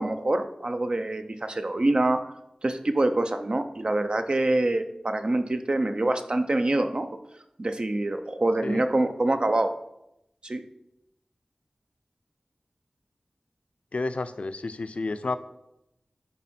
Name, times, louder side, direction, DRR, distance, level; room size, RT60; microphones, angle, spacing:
voice 1, 0.0-2.3 2.6-7.1 7.6-9.7 10.4-10.6, right 2 dB, 45° right, 8 dB, 0.6 m, -25 dB
voice 2, 13.9-15.4, left 3 dB, 70° left, 11 dB, 0.5 m, -31 dB
10.0 x 3.7 x 4.3 m, 0.84 s
wide cardioid pair, 70°, 2 cm